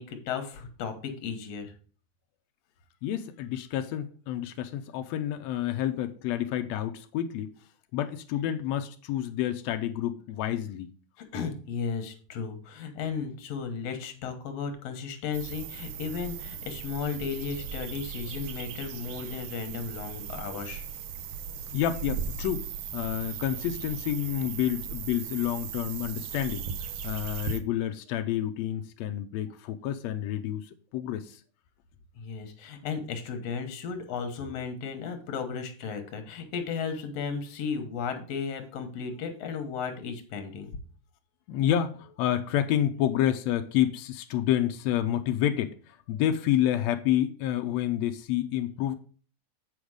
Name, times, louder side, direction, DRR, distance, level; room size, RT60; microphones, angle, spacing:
voice 1, 0.0-1.7 11.2-20.8 32.2-40.7, left 6 dB, 60° left, 7 dB, 2.0 m, -35 dB
voice 2, 3.0-7.5 7.9-10.9 21.7-22.7 22.9-26.6 27.0-31.4 41.5-49.0, left 11 dB, 85° left, 6 dB, 1.5 m, -29 dB
sound 1, 15.3-27.6, right 7 dB, 90° right, 1.3 m, -38 dB
7.9 x 5.1 x 4.8 m, 0.42 s
omnidirectional pair, 3.6 m